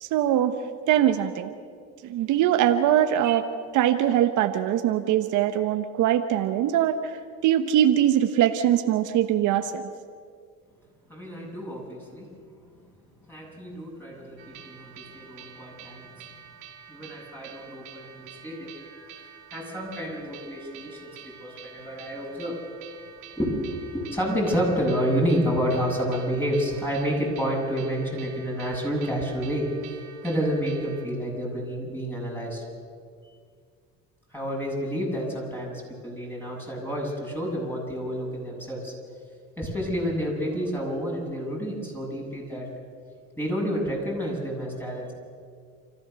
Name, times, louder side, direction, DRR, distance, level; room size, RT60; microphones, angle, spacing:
voice 1, 0.0-0.5 0.9-1.5 2.0-3.4 3.7-9.8, right 11 dB, 70° right, 8 dB, 1.1 m, -22 dB
voice 2, 11.1-12.3 13.3-16.1 16.9-19.3 19.5-22.6 23.4-29.6 30.2-32.6 34.3-38.9 39.6-42.7 43.4-45.1, equal, 5° left, -2 dB, 7.9 m, -29 dB
sound 1, 14.4-31.1, right 8 dB, 90° right, 3.3 m, -47 dB
29.5 x 14.5 x 6.9 m, 2.1 s
supercardioid pair, 85°, 32 cm